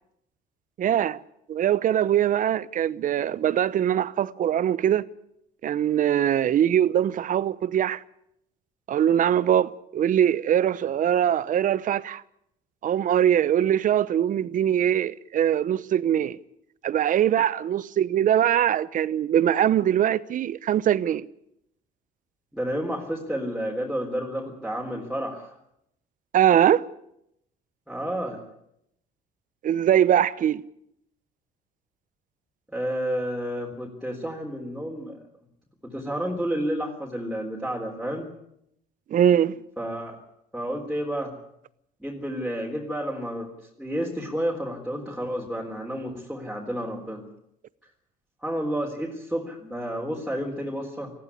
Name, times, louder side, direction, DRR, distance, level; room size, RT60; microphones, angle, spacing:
voice 1, 0.8-1.2 1.5-5.0 5.6-8.0 8.9-12.2 12.8-16.4 16.8-21.3 26.3-26.8 29.6-30.6 39.1-39.6, right 10 dB, 50° right, 0.9 m, -22 dB
voice 2, 22.5-25.5 27.9-28.4 32.7-35.2 35.8-38.3 39.8-40.2 40.5-41.3 42.0-43.5 43.8-47.2 48.4-51.1, equal, ahead, 3.9 m, -30 dB
19.5 x 15.5 x 9.8 m
cardioid pair, 110°, 17 cm